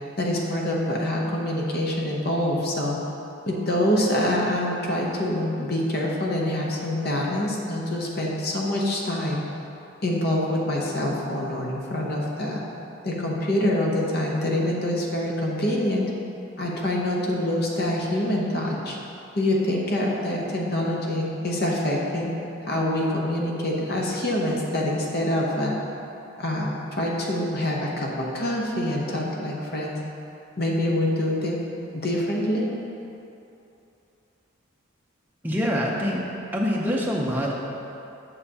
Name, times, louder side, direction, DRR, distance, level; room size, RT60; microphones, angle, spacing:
voice 1, 0.2-3.0 3.5-9.4 10.0-12.6 13.0-16.0 16.6-19.0 19.4-22.3 22.6-25.7 26.4-30.0 30.6-31.6 31.9-32.7, left 1 dB, 50° left, -2 dB, 0.8 m, -25 dB
voice 2, 35.4-36.2 36.5-37.5, equal, 10° right, -3 dB, 0.6 m, -25 dB
7.4 x 6.7 x 2.8 m, 2.8 s
head